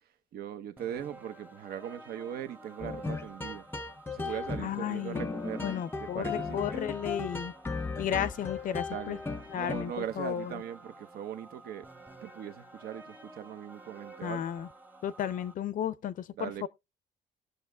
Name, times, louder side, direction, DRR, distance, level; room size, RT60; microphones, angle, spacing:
voice 1, 0.0-3.7 4.1-5.7 6.0-6.9 8.9-9.3 9.5-11.9 12.2-14.4 16.4-16.7, right 9 dB, 65° right, 0.8 m, -40 dB
sound 1, 0.8-15.5, right 2 dB, 10° right, 0.9 m, -51 dB
sound 2, 2.8-10.1, left 4 dB, 15° left, 0.7 m, -37 dB
voice 2, 4.6-5.3 5.6-7.5 8.0-9.2 9.5-10.5 14.2-14.7 15.0-16.7, left 10 dB, 55° left, 0.6 m, -33 dB
19.0 x 6.5 x 2.2 m
cardioid pair, 110°, 17 cm